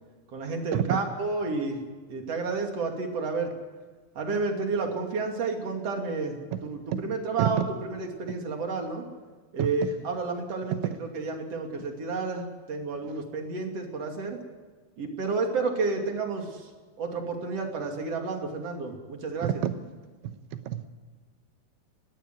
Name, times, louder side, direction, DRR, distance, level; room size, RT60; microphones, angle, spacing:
voice 1, 0.3-1.8 2.1-3.5 4.1-9.1 9.5-14.4 15.0-16.7 17.0-19.6, right 4 dB, 40° right, 3 dB, 3.0 m, -31 dB
voice 2, 19.4-19.7 20.7-20.9, right 11 dB, 75° right, 10 dB, 3.2 m, -26 dB
21.5 x 14.0 x 9.4 m, 1.4 s
omnidirectional pair, 5.7 m